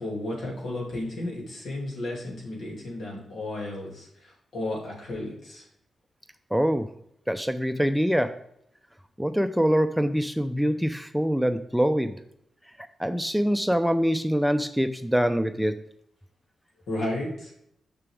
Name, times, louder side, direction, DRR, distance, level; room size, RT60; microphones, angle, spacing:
voice 1, 0.0-5.6 16.9-17.5, left 1 dB, 75° left, -2 dB, 2.7 m, -33 dB
voice 2, 6.5-6.9 7.3-8.4 9.2-12.2 12.8-15.8, equal, 5° right, 9 dB, 0.5 m, -24 dB
6.6 x 6.1 x 3.5 m, 0.75 s
supercardioid pair, 45°, 0 cm